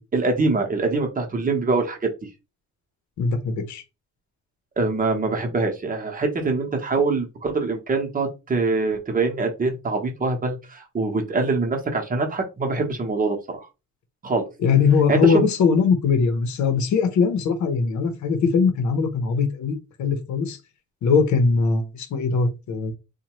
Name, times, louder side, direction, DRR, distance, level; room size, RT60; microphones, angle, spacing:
voice 1, 0.1-2.1 4.8-13.7 14.2-14.4 15.1-15.4, right 3 dB, 30° right, 0.9 m, -24 dB
voice 2, 3.2-3.8 14.6-20.6 21.0-22.9, left 5 dB, 70° left, 0.8 m, -21 dB
2.7 x 2.2 x 3.0 m
cardioid pair, 90°, 30 cm